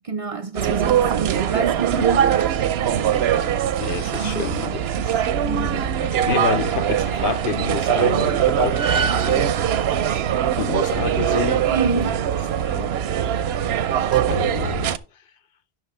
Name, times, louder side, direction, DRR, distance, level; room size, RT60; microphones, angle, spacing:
voice 1, 0.0-2.4 4.1-4.5 5.4-5.9 11.7-12.2, right 4 dB, 40° right, 0.6 m, -28 dB
sound 1, 0.6-15.0, right 9 dB, 85° right, 0.9 m, -21 dB
voice 2, 3.8-9.5 9.8-10.2 10.5-11.6 11.9-12.1 12.6-12.9 14.1-14.9, left 8 dB, 65° left, 0.8 m, -29 dB
11.0 x 6.1 x 4.2 m
omnidirectional pair, 1.0 m